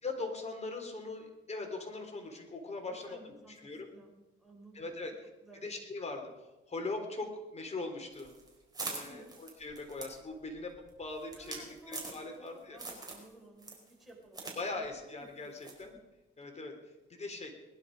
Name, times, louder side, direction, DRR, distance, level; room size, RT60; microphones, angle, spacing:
voice 1, 0.0-3.9 4.7-5.2 5.6-8.3 8.9-12.8 14.6-15.9 16.4-16.8 17.1-17.5, left 3 dB, 35° left, 4 dB, 3.5 m, -41 dB
voice 2, 3.1-3.5 3.9-4.1 4.4-5.1 5.4-5.7 8.9-9.3 11.4-15.2, right 2 dB, ahead, -3 dB, 6.4 m, -55 dB
sound 1, 8.1-12.5 12.8-13.3 13.6-14.6 14.8-14.9 15.6-15.9, right 3 dB, 20° right, 4.8 m, -43 dB
20.5 x 11.5 x 5.3 m, 1.1 s
cardioid pair, 90°, 20 cm